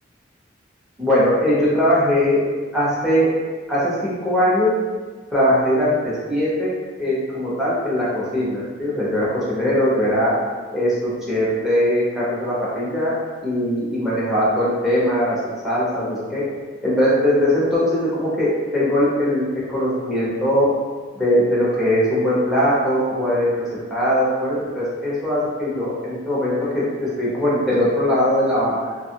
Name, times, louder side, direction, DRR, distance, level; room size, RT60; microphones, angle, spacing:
voice 1, 1.0-2.4 2.7-3.3 3.7-4.7 5.3-6.7 7.0-10.3 10.7-13.1 13.4-15.4 15.6-16.4 16.8-20.6 21.1-29.0, equal, ahead, -8 dB, 0.7 m, -20 dB
2.8 x 2.3 x 2.7 m, 1.4 s
head